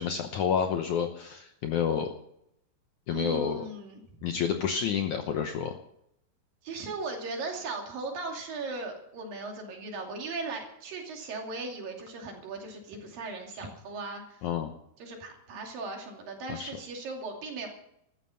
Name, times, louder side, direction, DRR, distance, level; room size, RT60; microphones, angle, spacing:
voice 1, 0.0-2.1 3.1-3.6 4.2-5.7 14.4-14.7 16.5-16.7, left 7 dB, 70° left, 5 dB, 1.9 m, -29 dB
voice 2, 3.1-4.0 6.6-14.4 15.0-17.7, right 3 dB, 65° right, 2 dB, 4.3 m, -38 dB
15.5 x 14.0 x 5.7 m, 0.77 s
omnidirectional pair, 4.5 m